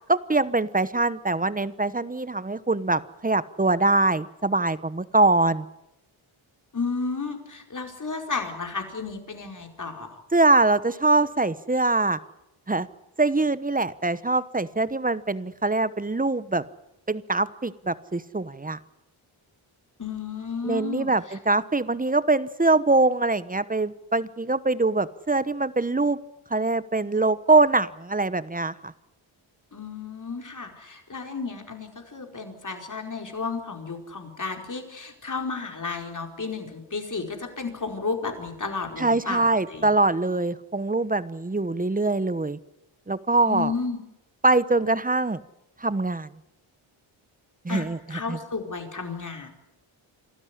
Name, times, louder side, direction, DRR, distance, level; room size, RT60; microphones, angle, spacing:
voice 1, 0.1-5.7 10.3-12.2 12.7-12.9 13.2-16.6 17.1-18.8 20.6-26.2 26.5-28.9 39.0-42.6 43.1-43.7 44.4-45.4 45.8-46.3 47.6-48.4, right 2 dB, 15° right, 16 dB, 1.0 m, -23 dB
voice 2, 6.7-10.2 20.0-21.4 29.7-39.9 43.4-44.0 47.7-49.5, left 4 dB, 35° left, 4 dB, 4.8 m, -33 dB
27.5 x 13.0 x 9.9 m, 0.90 s
cardioid pair, 75°, 50 cm